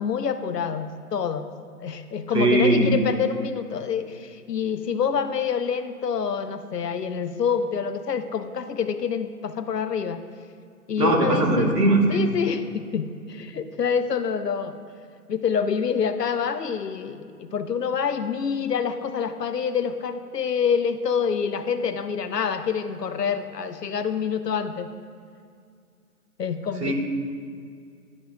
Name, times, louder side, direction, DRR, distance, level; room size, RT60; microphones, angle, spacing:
voice 1, 0.0-1.5 1.8-10.2 10.9-11.8 12.1-14.8 15.3-24.9 26.4-26.9, left 7 dB, 85° left, 10 dB, 0.7 m, -27 dB
voice 2, 2.3-2.9 11.0-12.2 26.8-26.9, right 2 dB, 75° right, 1 dB, 1.8 m, -20 dB
11.5 x 5.8 x 2.2 m, 2.2 s
figure-of-eight pair, 160°, 47 cm